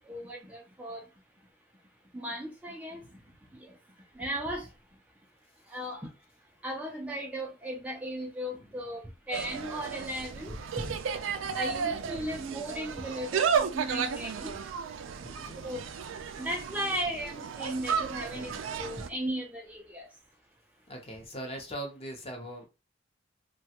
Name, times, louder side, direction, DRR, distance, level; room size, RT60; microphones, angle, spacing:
voice 1, 0.0-1.1 2.1-3.0 3.5-3.7 4.1-4.7 5.7-6.1 6.6-10.9 11.5-14.6 15.6-15.8 16.3-18.5 18.8-20.1, equal, 10° right, 0.4 m, -36 dB
Insect, 9.3-19.1, right 6 dB, 75° right, 0.4 m, -33 dB
voice 2, 15.2-15.7 18.3-18.6 20.9-22.7, right 1 dB, 30° left, 0.7 m, -41 dB
3.2 x 2.3 x 2.8 m
head